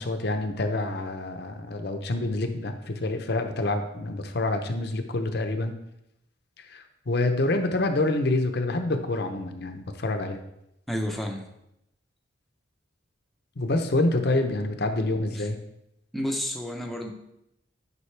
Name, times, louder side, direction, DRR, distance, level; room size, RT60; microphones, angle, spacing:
voice 1, 0.0-5.7 6.6-10.4 13.6-15.6, left 2 dB, 55° left, 6 dB, 0.7 m, -27 dB
voice 2, 10.9-11.4 15.3-15.5 16.1-17.1, equal, ahead, 0 dB, 0.6 m, -31 dB
9.6 x 5.2 x 3.3 m, 0.83 s
head